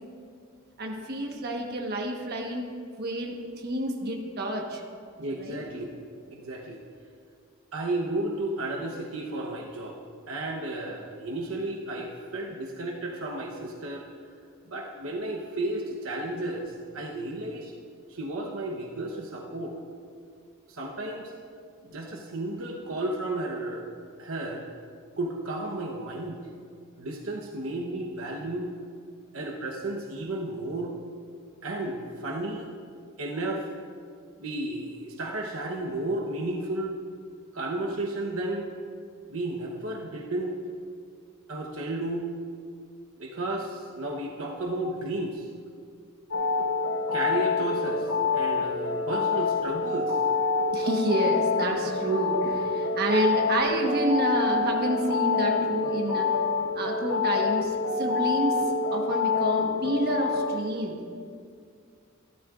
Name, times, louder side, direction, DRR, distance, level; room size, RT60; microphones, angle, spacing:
voice 1, 0.8-2.7 3.0-4.8 5.4-5.7 50.7-56.3 56.7-61.0, right 1 dB, 50° right, 1 dB, 1.2 m, -29 dB
voice 2, 5.2-5.9 6.3-6.8 7.7-10.0 10.3-14.0 14.7-17.7 18.1-19.7 20.7-21.3 21.8-23.9 24.2-24.7 25.2-26.4 27.0-28.7 29.3-30.9 31.6-32.7 33.2-33.7 34.4-36.9 37.5-38.7 39.3-40.6 41.5-42.3 43.2-45.5 47.1-50.2, right 2 dB, 75° right, -1 dB, 0.9 m, -33 dB
sound 1, 46.3-60.6, left 4 dB, 80° left, 0.8 m, -27 dB
14.5 x 12.5 x 2.5 m, 2.2 s
head